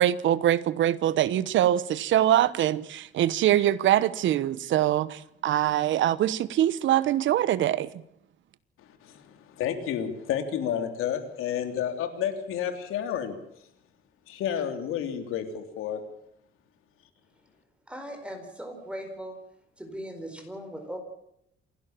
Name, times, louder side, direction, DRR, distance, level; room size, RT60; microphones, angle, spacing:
voice 1, 0.0-7.9, right 12 dB, 70° right, 16 dB, 1.1 m, -23 dB
voice 2, 8.8-13.4 14.3-16.0, left 9 dB, 85° left, 7 dB, 3.4 m, -31 dB
voice 3, 17.9-19.4 19.8-21.0, equal, 5° right, 5 dB, 4.5 m, -39 dB
28.0 x 11.5 x 8.9 m, 0.77 s
cardioid pair, 140°, 21 cm